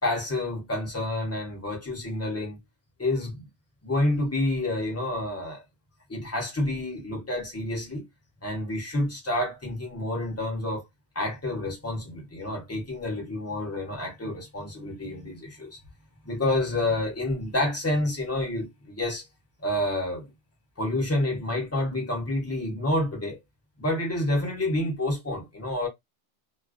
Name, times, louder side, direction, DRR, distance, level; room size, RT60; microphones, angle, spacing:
voice 1, 0.0-2.6 3.0-3.5 3.8-5.6 6.1-8.1 8.4-10.8 11.1-15.8 16.2-19.2 19.6-20.3 20.8-23.4 23.8-25.9, left 1 dB, 15° left, 0.9 m, -29 dB
2.3 x 2.2 x 2.4 m
omnidirectional pair, 1.1 m